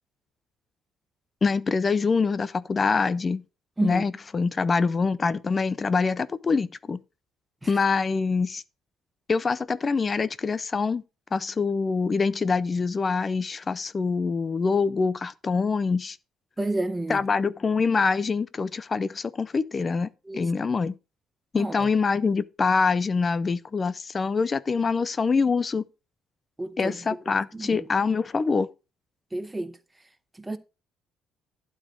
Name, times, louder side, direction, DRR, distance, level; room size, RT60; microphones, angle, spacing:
voice 1, 1.4-3.4 3.8-7.0 7.7-8.6 9.3-11.0 11.3-16.2 17.1-20.9 21.5-25.8 26.8-28.7, left 4 dB, 20° left, 0.4 m, -25 dB
voice 2, 16.6-17.2 20.3-20.5 21.6-21.9 26.6-27.0 27.5-27.8 29.3-29.7 30.4-30.6, right 2 dB, 10° right, 0.8 m, -30 dB
12.0 x 4.3 x 6.0 m
cardioid pair, 165°, 0 cm